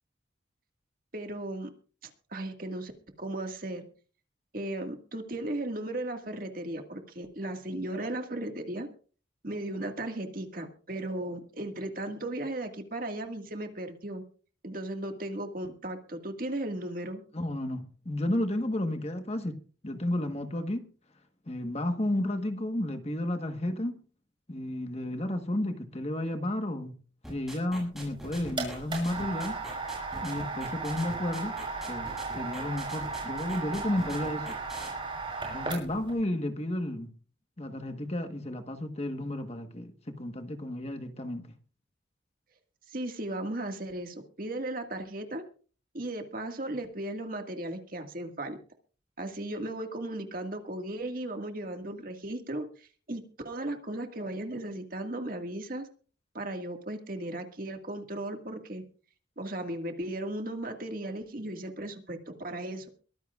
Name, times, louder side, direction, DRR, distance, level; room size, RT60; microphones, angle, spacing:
voice 1, 1.1-1.7 2.3-2.9 3.2-3.9 4.5-8.9 9.4-14.2 14.6-17.2 42.9-45.4 45.9-48.6 49.2-55.9 56.3-58.8 59.4-62.9, right 1 dB, 45° right, 1.9 m, -36 dB
voice 2, 17.3-19.6 19.8-20.8 21.5-24.0 24.5-26.9 27.3-29.6 30.2-31.5 31.9-34.6 35.4-37.1 37.6-41.5, left 1 dB, 35° left, 1.3 m, -32 dB
sound 1, 27.2-34.9, right 1 dB, ahead, 7.6 m, -43 dB
sound 2, 28.0-36.1, right 3 dB, 25° right, 6.0 m, -36 dB
22.5 x 15.0 x 2.4 m
head